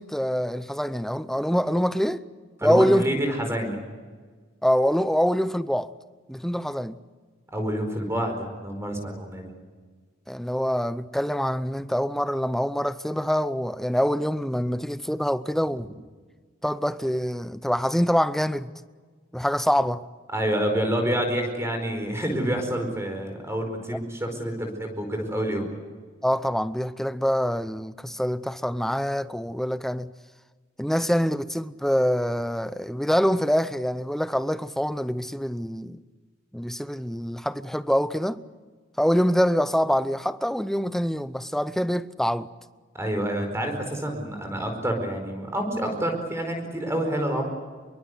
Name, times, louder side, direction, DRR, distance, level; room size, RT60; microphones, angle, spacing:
voice 1, 0.0-2.2 2.6-3.2 4.6-5.9 6.3-7.0 10.3-15.9 16.6-18.7 19.3-20.0 26.2-30.1 30.8-36.0 36.5-38.4 39.0-42.5, equal, ahead, 0.7 m, -25 dB
voice 2, 2.6-3.8 7.5-9.5 20.3-25.6 42.9-47.5, right 1 dB, 15° right, 4.7 m, -28 dB
25.5 x 23.0 x 8.2 m
head